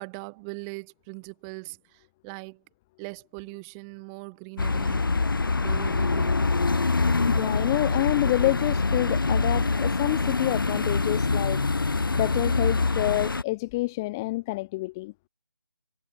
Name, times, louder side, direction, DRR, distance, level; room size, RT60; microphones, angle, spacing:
voice 1, 0.0-2.6 3.0-5.1 5.6-6.4, right 38 dB, 10° right, 1.9 m, -40 dB
sound 1, 4.6-13.4, left 3 dB, 65° left, 3.7 m, -25 dB
voice 2, 7.3-15.1, left 21 dB, 10° left, 0.9 m, -28 dB
figure-of-eight pair, 175°, 12 cm